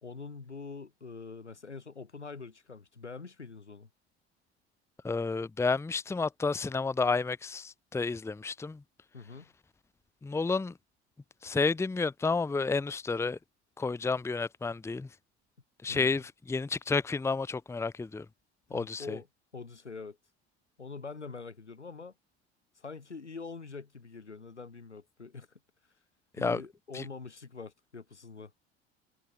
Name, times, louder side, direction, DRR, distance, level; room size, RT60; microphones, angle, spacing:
voice 1, 0.0-3.9 9.1-9.5 15.9-16.1 18.7-19.3 19.5-20.2 20.8-22.1 22.8-25.5 26.4-28.5, left 4 dB, 80° left, 4.1 m, -44 dB
voice 2, 5.0-8.8 10.2-10.7 11.4-13.4 13.8-15.1 15.8-18.3 18.7-19.2 26.4-26.6 26.9-27.0, left 4 dB, 10° left, 0.9 m, -31 dB
figure-of-eight pair, 70°, 34 cm